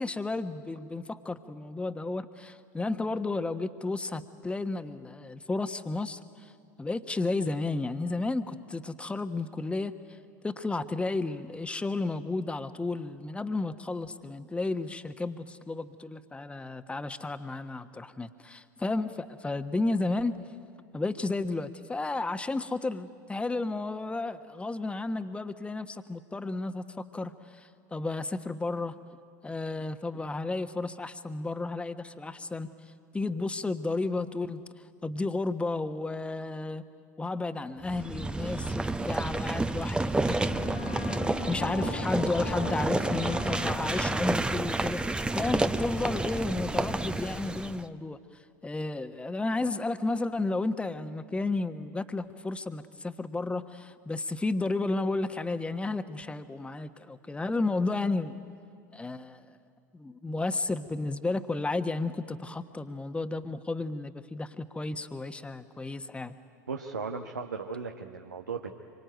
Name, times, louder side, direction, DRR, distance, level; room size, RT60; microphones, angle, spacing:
voice 1, 0.0-6.5 6.8-9.9 10.4-20.4 20.9-28.9 29.4-32.7 33.1-34.6 35.0-36.8 37.2-41.1 41.5-45.0 45.3-48.2 48.6-58.4 58.9-59.4 59.9-66.3, left 3 dB, 10° left, 10 dB, 1.3 m, -32 dB
sound 1, 37.8-47.8, right 2 dB, 10° right, 0.9 m, -30 dB
Wind instrument woodwind instrument, 39.3-45.1, left 9 dB, 75° left, 1.3 m, -43 dB
voice 2, 66.7-68.7, right 5 dB, 85° right, 3 dB, 1.2 m, -36 dB
26.0 x 24.0 x 9.3 m, 2.2 s
figure-of-eight pair, 75°, 9 cm